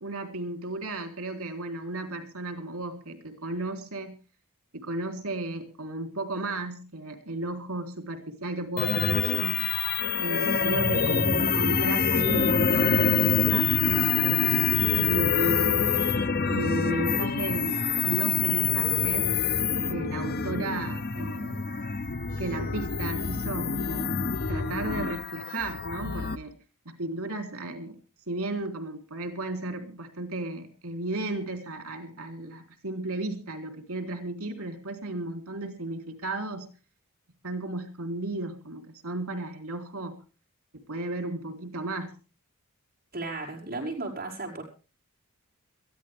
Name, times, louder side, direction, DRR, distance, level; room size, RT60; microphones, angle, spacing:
voice 1, 0.0-4.2 4.7-9.7 10.2-14.6 15.1-16.0 16.5-19.3 19.9-21.7 22.4-24.1 24.5-26.5 26.9-28.0 28.3-36.7 37.4-40.1 40.9-42.1, right 2 dB, 85° right, 6 dB, 3.7 m, -34 dB
sound 1, 8.8-26.4, left 6 dB, 45° left, 0.7 m, -26 dB
voice 2, 43.1-44.6, right 2 dB, 45° right, -1 dB, 5.8 m, -34 dB
22.0 x 14.5 x 3.5 m, 0.36 s
head